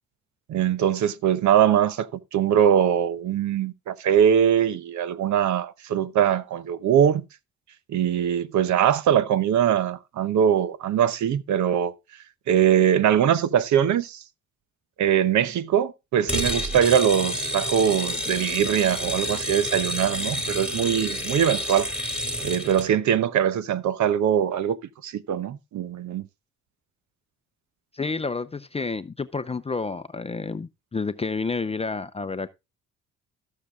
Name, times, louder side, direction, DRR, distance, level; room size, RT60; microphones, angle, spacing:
voice 1, 0.5-7.2 7.9-11.9 12.5-14.2 15.0-21.9 22.4-24.8 25.0-26.2, right 9 dB, 70° right, 0.9 m, -22 dB
sound 1, 16.3-22.9, equal, 5° right, 3.2 m, -29 dB
voice 2, 27.9-32.5, left 4 dB, 20° left, 0.5 m, -30 dB
14.0 x 6.7 x 3.6 m
cardioid pair, 90°, 30 cm